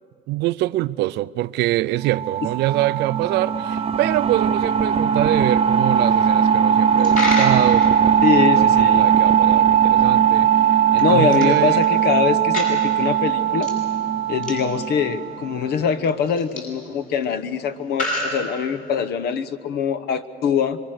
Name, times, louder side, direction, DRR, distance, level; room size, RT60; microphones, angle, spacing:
voice 1, 0.3-11.8, right 16 dB, 80° right, 0.5 m, -25 dB
sound 1, 2.1-15.5, right 8 dB, 35° right, 0.8 m, -18 dB
Coin (dropping), 6.9-19.1, left 1 dB, 50° left, 7.9 m, -33 dB
voice 2, 8.2-9.1 11.0-13.7 14.3-20.8, left 7 dB, 75° left, 1.1 m, -23 dB
26.0 x 23.0 x 6.5 m
cardioid pair, 110°, 17 cm